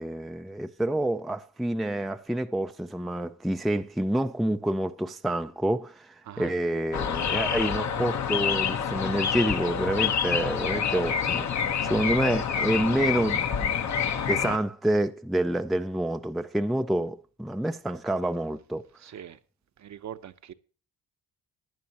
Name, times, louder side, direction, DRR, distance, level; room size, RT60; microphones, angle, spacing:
voice 1, 0.0-13.7 14.3-18.9, right 1 dB, ahead, 0.4 m, -28 dB
sound 1, 6.9-14.6, left 7 dB, 50° left, 1.1 m, -27 dB
voice 2, 19.0-19.4 19.8-20.5, right 10 dB, 50° right, 0.9 m, -41 dB
17.0 x 10.5 x 2.9 m
cardioid pair, 100°, 36 cm